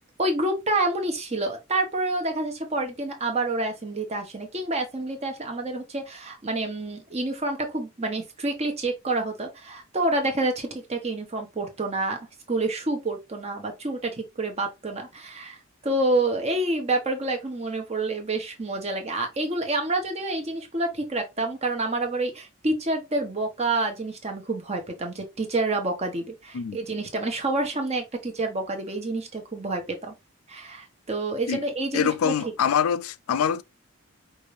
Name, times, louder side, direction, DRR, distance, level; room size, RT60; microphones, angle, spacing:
voice 1, 0.2-12.2 12.5-15.6 15.8-30.1 30.5-32.5, right 2 dB, 30° right, 1.0 m, -28 dB
voice 2, 31.9-33.6, left 7 dB, 85° left, 0.4 m, -24 dB
5.3 x 2.6 x 3.2 m
head